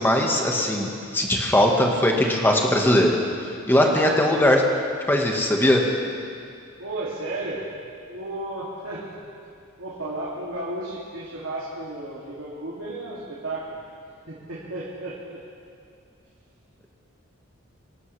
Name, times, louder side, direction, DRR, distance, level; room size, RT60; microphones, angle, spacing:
voice 1, 0.0-4.6 5.1-5.8, left 1 dB, 10° left, 0 dB, 1.3 m, -20 dB
voice 2, 3.8-4.2 6.8-7.6 8.1-9.0 9.8-13.8 14.3-15.4, right 2 dB, 75° right, -7 dB, 2.4 m, -33 dB
24.5 x 12.0 x 3.2 m, 2.4 s
head